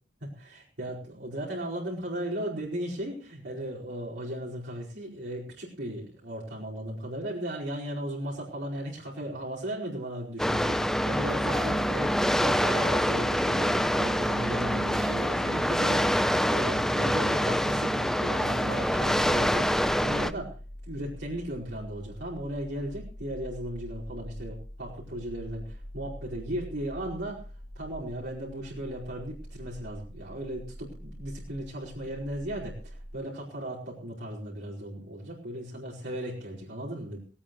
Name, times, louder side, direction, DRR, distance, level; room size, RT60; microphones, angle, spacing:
voice 1, 0.2-19.7 20.0-20.6 20.9-27.5 27.7-37.2, right 1 dB, 75° right, -5 dB, 4.9 m, -36 dB
sound 1, 10.4-20.3, equal, 5° left, 0.7 m, -26 dB
sound 2, 18.7-33.2, equal, 80° left, 4.1 m, -44 dB
19.0 x 18.0 x 3.2 m, 0.39 s
head